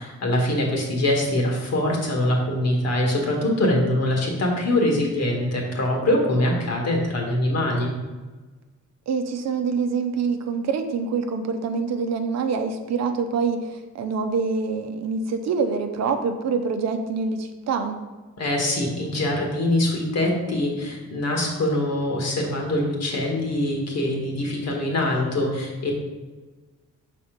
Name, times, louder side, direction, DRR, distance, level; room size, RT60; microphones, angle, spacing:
voice 1, 0.0-7.9 18.4-25.9, left 1 dB, 55° left, 0 dB, 1.8 m, -23 dB
voice 2, 9.1-18.0, right 5 dB, 60° right, 6 dB, 0.7 m, -25 dB
5.7 x 4.2 x 5.2 m, 1.3 s
cardioid pair, 90°, 30 cm